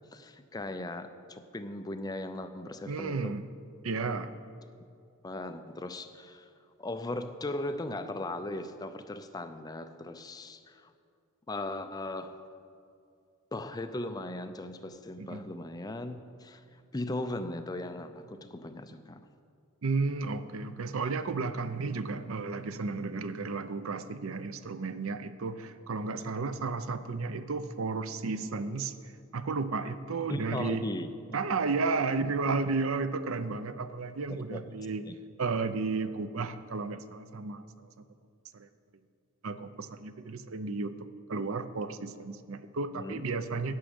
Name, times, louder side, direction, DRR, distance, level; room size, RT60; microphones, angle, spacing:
voice 1, 0.1-3.4 5.2-6.5 6.8-10.9 11.5-12.4 13.5-19.2 30.3-31.1 34.3-34.6 35.0-35.2 42.9-43.2, left 2 dB, 20° left, 9 dB, 0.5 m, -38 dB
voice 2, 2.9-3.4 3.8-4.3 15.2-15.5 19.8-30.9 31.3-35.0 35.4-37.9 38.5-38.7 39.4-43.7, right 4 dB, 70° right, 12 dB, 0.6 m, -33 dB
11.0 x 6.3 x 8.7 m, 2.4 s
head